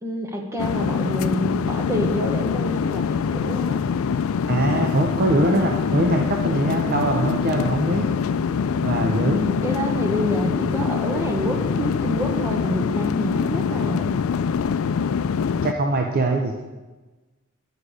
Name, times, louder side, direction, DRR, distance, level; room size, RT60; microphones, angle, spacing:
voice 1, 0.0-3.8 6.8-7.4 9.3-14.2, equal, 15° right, 2 dB, 1.0 m, -28 dB
sound 1, 0.6-15.7, left 6 dB, 85° left, 0.4 m, -24 dB
voice 2, 4.5-8.0 8.8-9.4 15.6-16.5, right 2 dB, 45° right, 2 dB, 0.7 m, -22 dB
10.0 x 6.6 x 5.0 m, 1.2 s
head